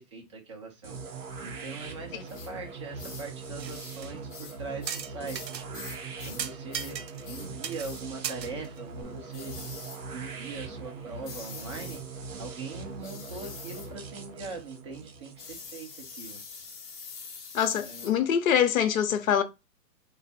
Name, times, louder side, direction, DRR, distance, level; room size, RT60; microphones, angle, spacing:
voice 1, 0.0-7.0 7.3-9.6 10.1-12.0 12.4-16.4 17.8-18.2, right 3 dB, 20° right, 0.5 m, -42 dB
sound 1, 0.8-16.7, right 4 dB, 65° right, 1.2 m, -41 dB
sound 2, 2.3-2.5 3.0-3.3 3.7-4.0 4.3-6.5 6.7-7.0 7.2-7.5 7.8-8.1 9.3-10.0 11.2-12.0 13.0-13.9 15.4-18.2, left 5 dB, 25° left, 0.8 m, -45 dB
sound 3, 3.4-3.7 4.0-4.1 4.9-5.6 6.0-6.1 6.4-7.4 7.6-7.9 8.2-9.0, right 8 dB, 90° right, 0.7 m, -36 dB
voice 2, 17.5-19.4, left 8 dB, 55° left, 0.7 m, -24 dB
3.3 x 2.1 x 4.2 m
hypercardioid pair, 145°, 49 cm